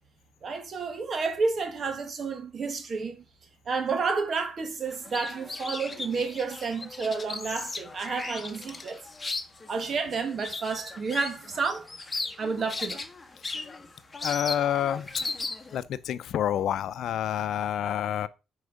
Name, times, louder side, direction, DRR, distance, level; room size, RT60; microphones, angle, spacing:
voice 1, 0.4-3.2 3.6-9.0 9.7-11.9 12.4-13.0 17.8-17.9, right 4 dB, 45° right, 1.7 m, -30 dB
sound 1, 4.9-15.8, left 3 dB, 25° left, 1.5 m, -37 dB
voice 2, 14.2-15.1 15.7-18.3, left 10 dB, 75° left, 0.6 m, -28 dB
9.5 x 4.8 x 4.9 m
cardioid pair, 90°, 0 cm